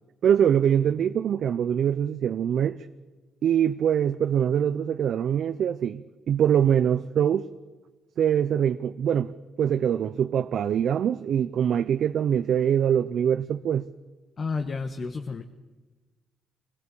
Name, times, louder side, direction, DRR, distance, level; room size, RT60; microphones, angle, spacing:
voice 1, 0.2-2.8 3.4-7.5 8.2-9.3 9.6-13.9, right 9 dB, 65° right, 0.7 m, -23 dB
voice 2, 14.4-15.4, left 4 dB, 45° left, 1.4 m, -31 dB
24.5 x 17.0 x 8.5 m
cardioid pair, 90°, 0 cm